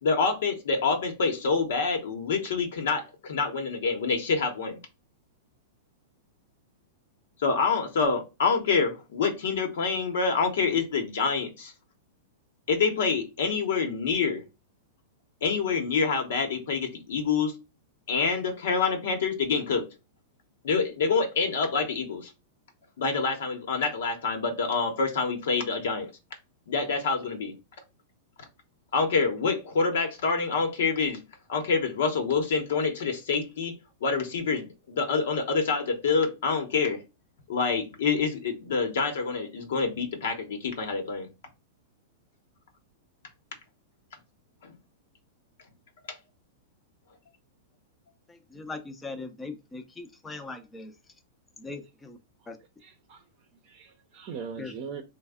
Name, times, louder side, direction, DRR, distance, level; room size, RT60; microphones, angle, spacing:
voice 1, 0.0-4.8 7.4-11.7 12.7-14.4 15.4-17.5 18.1-19.9 20.6-22.3 23.0-26.1 26.7-27.5 28.9-31.2 31.5-33.7 34.0-37.0 37.5-41.3 44.6-44.7 46.1-46.2, left 4 dB, 75° left, 0.9 m, -27 dB
voice 2, 48.3-50.9 51.6-52.2 52.5-52.6 54.6-54.7, left 3 dB, 10° left, 0.5 m, -40 dB
voice 3, 52.8-53.2 53.6-55.0, right 6 dB, 40° right, 0.6 m, -40 dB
3.2 x 2.1 x 3.5 m
hypercardioid pair, 140°, 0 cm